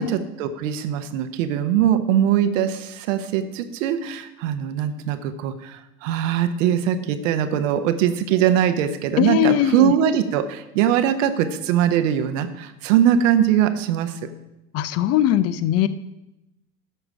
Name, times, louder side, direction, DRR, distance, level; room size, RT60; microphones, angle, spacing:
voice 1, 0.0-14.2, right 9 dB, 60° right, 10 dB, 1.0 m, -21 dB
voice 2, 9.2-9.9 14.7-15.9, left 12 dB, 35° left, 15 dB, 0.6 m, -20 dB
12.5 x 6.1 x 4.8 m, 0.92 s
figure-of-eight pair, 80°, 44 cm